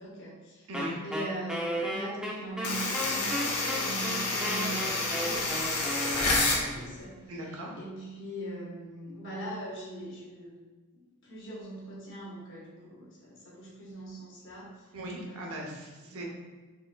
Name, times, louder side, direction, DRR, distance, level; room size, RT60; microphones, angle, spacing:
voice 1, 0.0-0.7 1.0-10.5 10.9-14.9 15.3-15.8 16.0-16.3, right 1 dB, 55° left, -4 dB, 1.2 m, -41 dB
Wind instrument woodwind instrument, 0.7-6.8, equal, 5° right, 0.5 m, -34 dB
voice 2, 0.7-1.0 7.3-7.8 14.9-16.3, right 1 dB, 65° right, -1 dB, 0.8 m, -39 dB
sound 1, 2.6-6.6, left 2 dB, 80° left, 0.8 m, -29 dB
4.3 x 3.5 x 2.2 m, 1.3 s
head